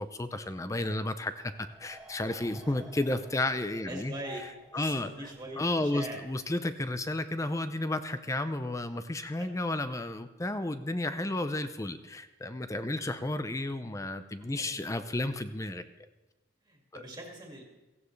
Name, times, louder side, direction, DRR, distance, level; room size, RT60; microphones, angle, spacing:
voice 1, 0.0-4.1 4.7-5.1 5.6-15.8 16.9-17.0, left 2 dB, 15° left, 11 dB, 0.5 m, -32 dB
sound 1, 1.4-6.3, equal, 5° right, 1.9 m, -52 dB
voice 2, 3.9-4.4 4.7-6.2 9.4-9.5 14.4-14.8 16.6-17.6, right 1 dB, 20° right, 0 dB, 2.2 m, -42 dB
16.5 x 15.0 x 3.3 m, 1.1 s
head